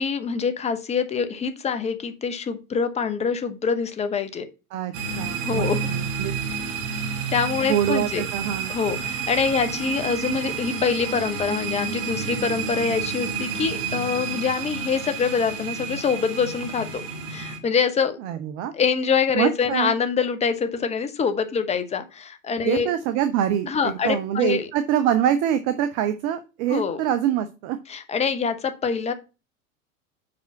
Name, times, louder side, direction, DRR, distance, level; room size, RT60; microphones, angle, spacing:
voice 1, 0.0-4.4 5.4-5.9 6.5-6.6 7.3-8.2 8.7-17.0 17.3-18.2 18.7-22.9 23.7-24.7 26.7-27.0 27.9-29.1, left 6 dB, 15° left, 9 dB, 0.8 m, -25 dB
voice 2, 4.7-6.3 7.6-8.7 18.2-18.7 19.3-19.9 22.6-27.8, right 10 dB, 20° right, 10 dB, 0.3 m, -25 dB
sound 1, 4.9-17.6, right 6 dB, 40° right, 2.0 m, -30 dB
5.5 x 4.9 x 5.7 m, 0.31 s
figure-of-eight pair, 90°, 41 cm